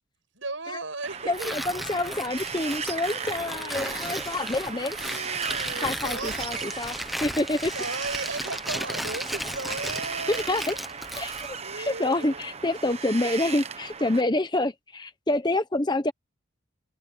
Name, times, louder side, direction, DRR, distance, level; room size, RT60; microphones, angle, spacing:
voice 1, 0.4-1.6 3.0-4.5 4.9-6.7 7.7-10.8 11.6-12.4, right 3 dB, 65° right, 7.0 m, -37 dB
Wind, 1.0-14.2, right 6 dB, 30° right, 1.0 m, -36 dB
voice 2, 1.2-5.0 5.8-7.7 10.3-10.8 11.2-16.1, left 2 dB, 20° left, 0.9 m, -27 dB
Tearing, 1.3-11.5, equal, ahead, 1.1 m, -35 dB
open air
head